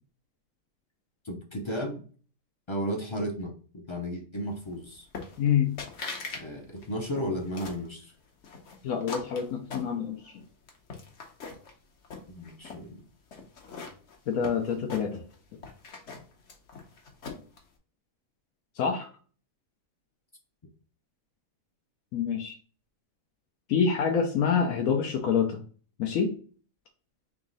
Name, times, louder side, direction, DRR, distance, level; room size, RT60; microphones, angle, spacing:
voice 1, 1.2-2.0 2.7-5.1 6.4-8.1 12.3-13.0, equal, 40° left, 2 dB, 0.4 m, -34 dB
sound 1, 5.1-5.5 5.8-6.4 6.8-7.9 8.4-10.3 10.7-11.7 12.0-12.8 13.3-15.3 15.6-17.6, left 4 dB, 60° left, 1.1 m, -41 dB
voice 2, 5.4-5.7 8.8-10.4 14.3-15.2 18.8-19.1 22.1-22.6 23.7-25.6 26.0-26.4, left 7 dB, 80° left, 2 dB, 1.1 m, -27 dB
3.6 x 3.0 x 3.8 m, 0.41 s
omnidirectional pair, 1.4 m